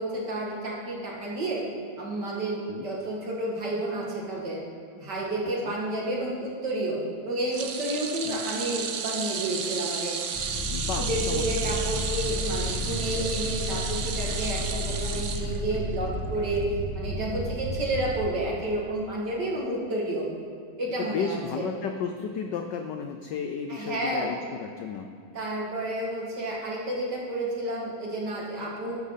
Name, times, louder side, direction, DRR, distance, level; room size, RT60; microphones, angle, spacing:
voice 1, 0.0-1.6 2.0-4.6 5.0-10.1 11.0-20.3 20.8-21.7 23.7-24.3 25.3-29.0, right 1 dB, 50° right, -3 dB, 2.9 m, -30 dB
sound 1, 7.5-16.0 16.3-16.6 17.8-17.9, right 6 dB, 80° right, 0.6 m, -33 dB
sound 2, 10.3-18.2, left 1 dB, 5° left, 1.5 m, -32 dB
voice 2, 10.7-11.7 21.0-25.1, left 6 dB, 70° left, 5 dB, 1.1 m, -33 dB
13.0 x 11.5 x 4.1 m, 2.3 s
omnidirectional pair, 2.4 m